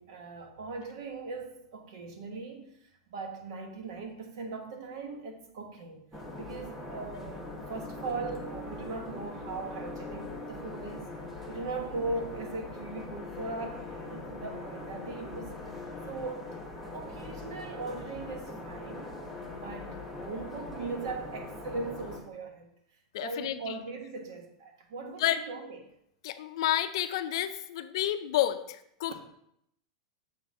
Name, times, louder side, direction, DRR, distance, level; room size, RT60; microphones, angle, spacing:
voice 1, 0.0-6.0 6.4-11.1 11.5-15.5 16.1-16.5 16.8-19.1 19.5-22.7 23.2-25.8, right 3 dB, 60° right, 1.2 m, -39 dB
sound 1, 6.1-22.2, left 2 dB, 5° right, 0.9 m, -41 dB
voice 2, 23.1-23.8 25.0-25.4 26.2-29.2, left 12 dB, 60° left, 0.5 m, -30 dB
7.0 x 4.1 x 4.7 m
supercardioid pair, 165°, 3 cm